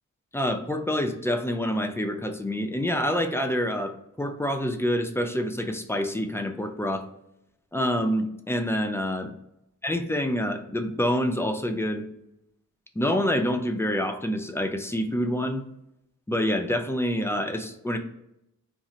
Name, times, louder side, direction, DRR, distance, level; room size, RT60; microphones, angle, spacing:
voice 1, 0.3-7.1 7.7-9.3 9.8-12.1 13.0-15.6 16.3-18.0, equal, 10° left, 5 dB, 0.3 m, -27 dB
2.6 x 2.4 x 2.9 m, 0.80 s
wide cardioid pair, 95°, 32 cm